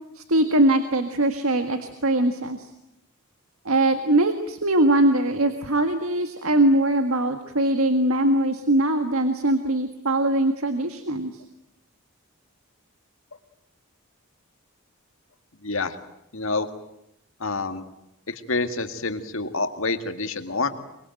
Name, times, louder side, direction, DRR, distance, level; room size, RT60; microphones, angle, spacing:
voice 1, 0.2-2.7 3.7-11.3, right 1 dB, 75° right, 8 dB, 1.8 m, -21 dB
voice 2, 15.6-16.0 16.3-16.7 17.4-17.8 18.3-20.7, left 3 dB, 65° left, 8 dB, 2.1 m, -27 dB
24.0 x 23.5 x 9.2 m, 0.82 s
head